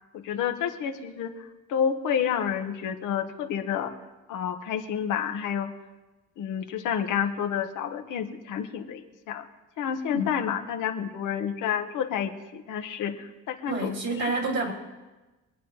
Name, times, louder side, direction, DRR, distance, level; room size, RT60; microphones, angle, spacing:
voice 1, 0.1-3.9 4.3-5.7 6.4-9.4 9.8-14.3, left 8 dB, 90° left, 5 dB, 1.2 m, -30 dB
voice 2, 13.7-14.7, right 2 dB, 60° right, -1 dB, 3.4 m, -28 dB
25.5 x 9.2 x 3.2 m, 1.2 s
cardioid pair, 90°, 30 cm